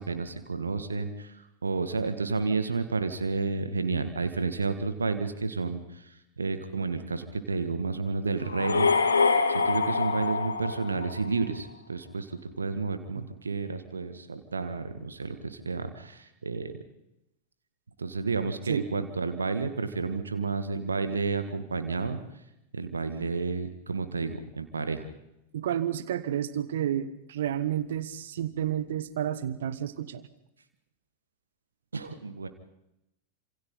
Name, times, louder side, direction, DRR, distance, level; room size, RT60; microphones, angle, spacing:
voice 1, 0.0-1.3 1.6-5.8 6.4-8.9 9.5-12.3 12.6-16.7 18.0-22.2 22.7-25.1 31.9-32.5, right 4 dB, 75° right, 9 dB, 1.9 m, -31 dB
sound 1, 8.5-11.5, left 4 dB, 75° left, 2.4 m, -25 dB
voice 2, 25.5-30.3, right 10 dB, 60° right, 15 dB, 1.5 m, -31 dB
28.5 x 27.0 x 3.9 m, 0.86 s
figure-of-eight pair, 90°, 0 cm